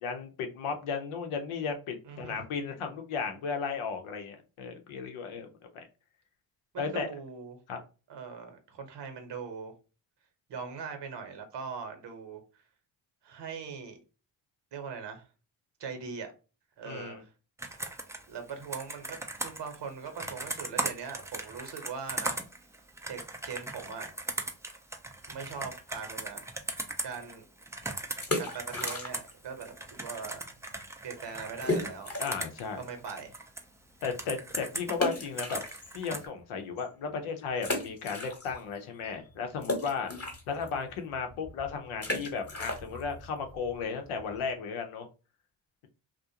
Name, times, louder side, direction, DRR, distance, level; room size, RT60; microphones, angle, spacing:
voice 1, 0.0-5.5 5.7-5.8 6.8-7.1 7.7-7.8 16.8-17.2 32.2-32.8 34.0-35.6 35.9-40.1 40.5-45.1, left 5 dB, 80° left, 0.7 m, -35 dB
voice 2, 2.0-2.4 6.7-7.6 8.1-9.7 10.5-12.4 13.2-14.0 14.7-15.3 15.8-16.3 16.8-17.3 18.3-19.2 19.4-22.4 23.1-24.1 25.3-26.5 27.0-27.5 28.4-30.4 31.0-32.1 32.8-33.3, right 6 dB, 55° right, 0.9 m, -41 dB
Computer keyboard, 17.6-29.3 29.6-33.6 34.0-36.2, right 2 dB, 5° right, 0.4 m, -38 dB
sound 1, 28.1-29.5 29.7-29.8 30.4-30.5 30.8-30.9 31.6-32.5 33.0-33.1 34.9-36.3 36.8-36.9 37.6-38.8 39.0-44.5, left 2 dB, 30° left, 1.1 m, -35 dB
2.4 x 2.1 x 2.7 m
supercardioid pair, 45°, 49 cm